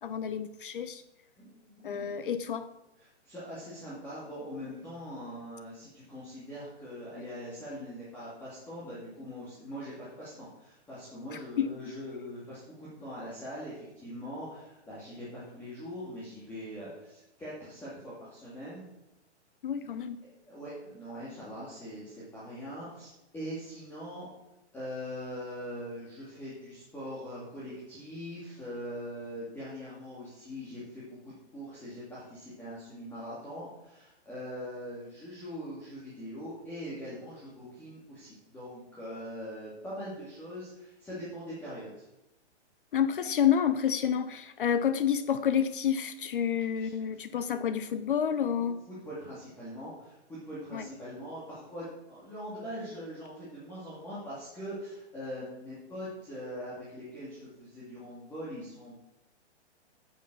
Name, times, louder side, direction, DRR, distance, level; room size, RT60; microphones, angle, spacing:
voice 1, 0.0-1.0 1.8-2.7 11.3-11.7 19.6-20.2 42.9-48.8 50.7-50.9, left 8 dB, 50° left, 12 dB, 0.7 m, -29 dB
voice 2, 1.4-2.2 3.0-18.9 20.2-24.3 24.7-42.0 46.8-46.9 47.3-47.4 48.6-59.0, equal, 5° left, -9 dB, 2.2 m, -42 dB
9.0 x 7.7 x 6.0 m, 0.91 s
hypercardioid pair, 165°, 35 cm